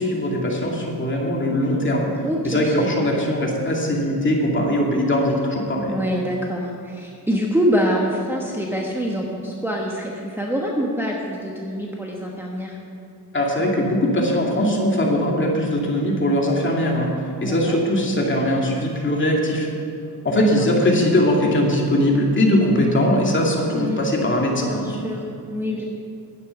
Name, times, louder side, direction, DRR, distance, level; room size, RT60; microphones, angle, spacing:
voice 1, 0.0-2.1 2.4-6.0 13.3-17.1 17.4-19.7 20.2-24.9, left 1 dB, 30° left, -1 dB, 2.5 m, -20 dB
voice 2, 1.5-1.9 2.2-3.1 5.9-12.8 17.4-17.8 20.4-20.7 23.7-24.1 24.7-25.8, equal, 5° right, -2 dB, 1.2 m, -25 dB
11.0 x 9.4 x 5.9 m, 2.5 s
cardioid pair, 100°, 40 cm